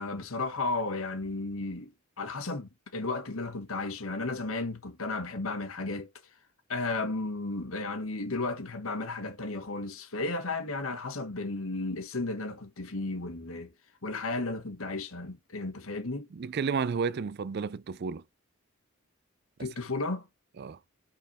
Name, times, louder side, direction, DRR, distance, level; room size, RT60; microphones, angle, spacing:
voice 1, 0.0-6.1 6.7-13.7 14.0-16.3 19.6-20.3, left 3 dB, 75° left, 1.5 m, -34 dB
voice 2, 16.3-18.2 20.6-20.8, right 5 dB, 50° right, 0.4 m, -32 dB
5.8 x 4.3 x 5.5 m
head